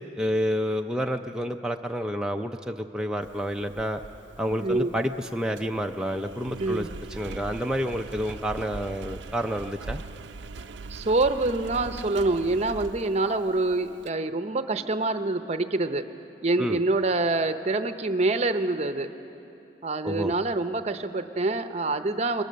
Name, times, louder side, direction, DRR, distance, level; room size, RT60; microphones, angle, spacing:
voice 1, 0.2-4.0 4.4-10.0 16.6-16.8 20.0-20.3, equal, 5° right, 3 dB, 0.4 m, -29 dB
Engine, 3.2-14.1, right 3 dB, 70° right, 0.5 m, -42 dB
voice 2, 10.9-16.0 16.4-19.1 19.8-22.4, right 2 dB, 35° right, 9 dB, 0.7 m, -26 dB
22.0 x 19.0 x 6.4 m, 2.9 s
head